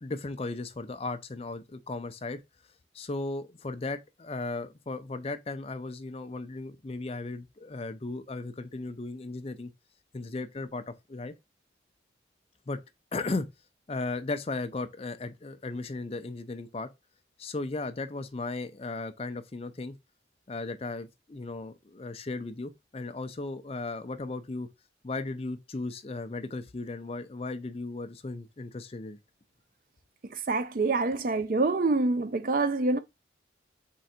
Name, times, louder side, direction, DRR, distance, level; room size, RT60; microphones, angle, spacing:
voice 1, 0.0-2.4 2.9-9.7 10.1-11.3 12.7-12.8 13.1-13.5 13.9-16.9 17.4-20.0 20.5-24.7 25.0-29.2, left 3 dB, 30° left, 0.5 m, -36 dB
voice 2, 30.3-33.0, right 3 dB, 45° right, 0.5 m, -26 dB
3.8 x 3.2 x 4.3 m
head